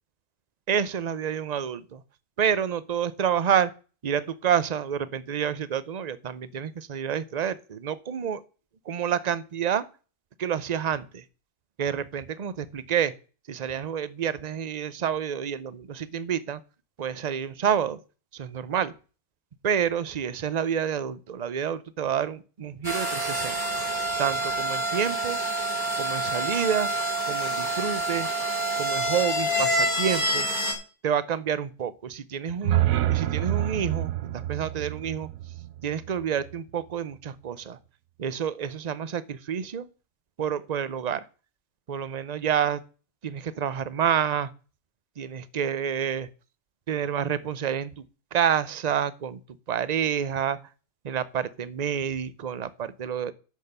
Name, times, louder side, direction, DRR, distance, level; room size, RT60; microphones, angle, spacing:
voice 1, 0.7-2.0 2.4-3.7 4.0-8.4 8.9-9.8 10.4-11.2 11.8-13.1 13.5-16.6 17.0-18.0 18.3-18.9 19.6-23.6 24.2-25.4 26.0-26.9 27.3-28.3 28.8-30.5 31.0-32.8 33.1-35.3 35.8-37.8 38.2-39.9 40.4-41.2 41.9-42.8 43.2-44.5 45.2-46.3 46.9-48.0 48.3-49.4 49.7-50.6 51.0-53.3, right 8 dB, 40° right, 16 dB, 0.7 m, -28 dB
sound 1, 22.8-30.7, right 1 dB, 35° left, 4.8 m, -27 dB
sound 2, 32.5-36.5, right 14 dB, 85° right, 1.2 m, -28 dB
10.5 x 6.6 x 6.7 m, 0.36 s
omnidirectional pair, 1.4 m